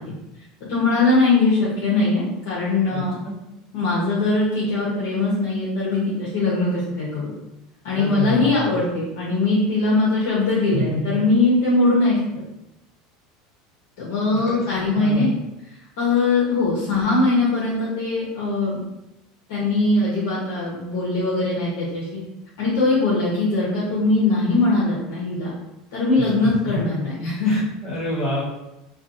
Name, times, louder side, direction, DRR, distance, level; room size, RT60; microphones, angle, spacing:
voice 1, 0.7-3.2 3.7-7.3 7.8-12.2 14.0-15.3 16.0-18.8 19.5-22.2 22.6-25.5 25.9-27.5, left 2 dB, 85° left, -7 dB, 0.7 m, -21 dB
voice 2, 2.9-3.4 8.0-8.6 10.7-11.1 14.3-15.3 26.2-26.9 27.4-28.4, equal, 10° left, -8 dB, 0.7 m, -28 dB
2.5 x 2.2 x 2.5 m, 0.92 s
supercardioid pair, 160°, 0 cm